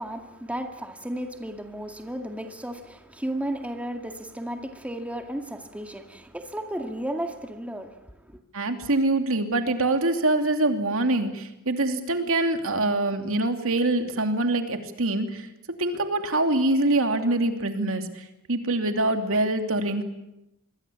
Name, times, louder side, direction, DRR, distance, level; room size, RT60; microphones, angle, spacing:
voice 1, 0.0-8.4, right 1 dB, 5° right, 2.1 m, -34 dB
voice 2, 8.5-15.5 15.8-20.0, right 2 dB, 65° right, 2.8 m, -24 dB
26.5 x 22.0 x 8.7 m
head